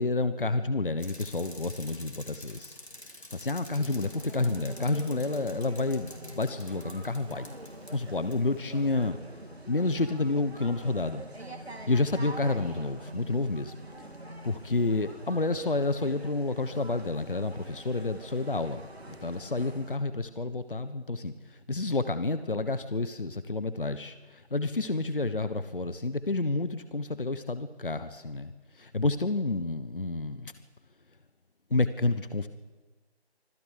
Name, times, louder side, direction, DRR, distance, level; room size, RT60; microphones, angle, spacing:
voice 1, 0.0-2.8 3.3-7.5 7.9-9.2 9.7-11.2 11.9-13.7 14.4-30.5 31.7-32.5, left 3 dB, 55° left, 12 dB, 1.2 m, -29 dB
Bicycle, 1.0-7.9 8.3-8.4, left 1 dB, 80° left, 4.7 m, -48 dB
sound 1, 3.8-20.0, right 1 dB, 70° right, 3.4 m, -45 dB
25.5 x 15.5 x 8.3 m, 1.2 s
figure-of-eight pair, 165°, 33 cm